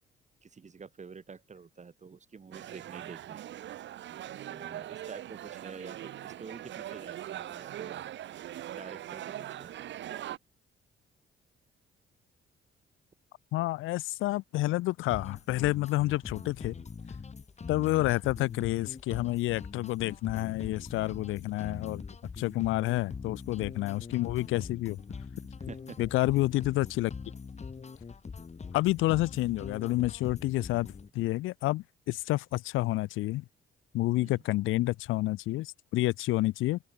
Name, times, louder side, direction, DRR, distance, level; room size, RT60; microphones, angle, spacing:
voice 1, 0.4-3.4 4.1-4.2 4.5-8.1 8.7-9.7 25.7-26.0 34.1-34.4, right 5 dB, 35° right, 6.3 m, -48 dB
sound 1, 2.5-10.4, right 12 dB, 65° right, 0.9 m, -41 dB
voice 2, 13.5-16.7 17.7-22.0 22.4-25.0 26.0-27.1 28.7-33.4 33.9-36.8, left 17 dB, 90° left, 0.8 m, -29 dB
sound 2, 15.1-31.1, left 5 dB, 35° left, 3.5 m, -43 dB
open air
cardioid pair, 90°, 20 cm